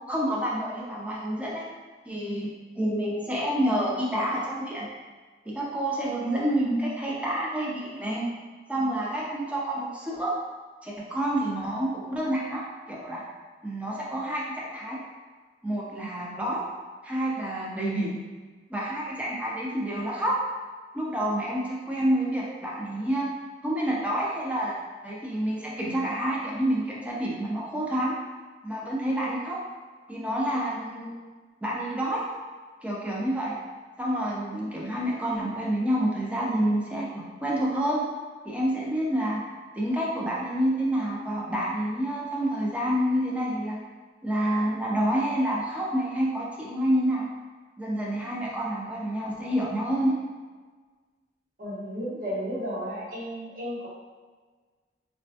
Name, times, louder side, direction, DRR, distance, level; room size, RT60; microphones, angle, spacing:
voice 1, 0.1-1.6 2.1-4.9 5.5-8.3 8.7-10.3 10.8-13.2 13.6-15.0 15.6-16.6 17.0-18.2 18.7-20.4 20.9-23.3 23.6-24.7 25.0-28.1 28.6-29.6 30.1-31.1 31.6-32.2 32.8-33.5 34.0-38.0 38.4-39.4 39.7-43.8 44.2-47.3 47.8-50.2, right 1 dB, 5° right, -4 dB, 0.4 m, -28 dB
voice 2, 51.6-53.9, equal, 50° right, -6 dB, 0.9 m, -33 dB
4.0 x 2.2 x 2.6 m, 1.4 s
head